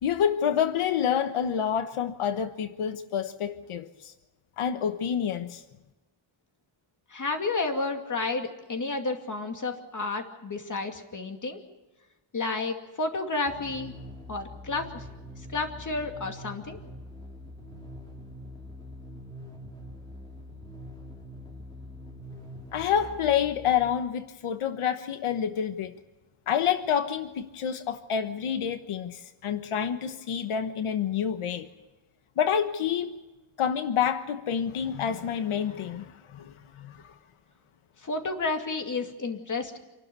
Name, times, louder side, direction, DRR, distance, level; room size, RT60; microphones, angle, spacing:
voice 1, 0.0-4.1 4.6-5.6 22.7-25.9 26.5-31.7 32.4-33.1 33.6-37.1, left 8 dB, 90° left, 1.2 m, -28 dB
voice 2, 7.1-11.6 12.3-13.9 14.3-15.0 15.5-16.8 38.0-39.8, left 3 dB, 35° left, 2.6 m, -31 dB
sound 1, 13.4-24.2, left 1 dB, 10° left, 3.4 m, -44 dB
27.0 x 12.5 x 9.6 m
wide cardioid pair, 145°, 49 cm